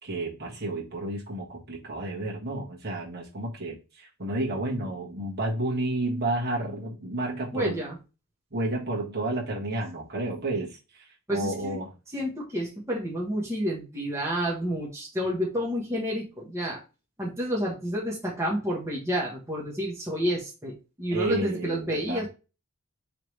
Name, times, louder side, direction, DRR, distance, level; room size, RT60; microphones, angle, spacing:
voice 1, 0.0-7.8 8.5-11.9 21.1-22.2, right 2 dB, 45° right, -3 dB, 1.5 m, -31 dB
voice 2, 7.5-8.0 11.3-11.8 12.1-16.8 17.2-22.3, equal, 15° right, -3 dB, 1.2 m, -30 dB
4.7 x 3.4 x 3.2 m, 0.30 s
head